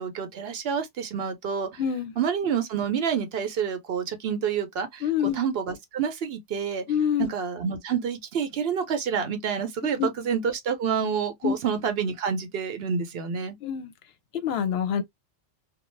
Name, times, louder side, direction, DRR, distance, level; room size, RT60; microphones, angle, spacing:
voice 1, 0.0-1.8 2.2-5.0 5.3-6.8 7.2-13.6, right 7 dB, 65° right, 0.9 m, -28 dB
voice 2, 1.8-2.1 5.0-5.4 6.9-7.3 10.0-10.1 11.4-11.6 13.6-13.9 14.3-15.0, left 8 dB, 65° left, 0.8 m, -26 dB
2.4 x 2.2 x 3.1 m
omnidirectional pair, 1.2 m